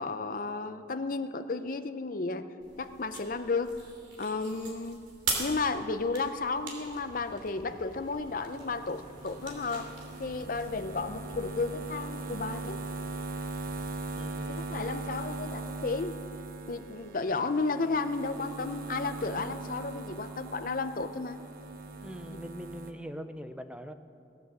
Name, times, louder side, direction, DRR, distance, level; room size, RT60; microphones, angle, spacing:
voice 1, 0.0-2.5 2.8-3.7 4.2-5.0 5.4-9.9 10.2-12.8 14.5-16.2 16.7-21.4 22.3-22.4, left 3 dB, 50° left, 10 dB, 0.6 m, -33 dB
sound 1, 2.6-11.4, right 3 dB, 80° right, 3.0 m, -42 dB
sound 2, 6.7-13.9, equal, 30° right, 3.9 m, -56 dB
sound 3, 8.0-22.9, right 2 dB, 50° right, 1.0 m, -40 dB
voice 2, 14.2-14.8 22.0-23.9, equal, 5° right, 9 dB, 0.5 m, -42 dB
18.0 x 9.6 x 7.5 m, 2.6 s
head